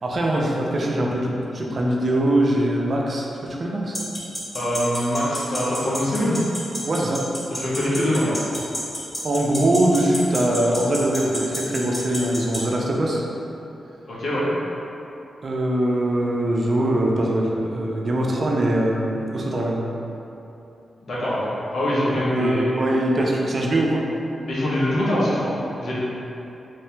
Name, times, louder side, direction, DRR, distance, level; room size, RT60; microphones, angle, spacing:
voice 1, 0.0-4.0 6.9-7.3 9.2-13.2 15.4-19.8 22.3-24.1, right 1 dB, 50° right, -2 dB, 0.5 m, -22 dB
sound 1, 3.9-12.6, equal, 15° left, 0.8 m, -29 dB
voice 2, 4.5-6.4 7.5-8.4 14.1-14.5 21.0-22.8 24.5-25.5 25.8-25.9, left 1 dB, 75° left, -8 dB, 1.0 m, -23 dB
3.2 x 2.8 x 3.3 m, 2.9 s
cardioid pair, 85°, 0 cm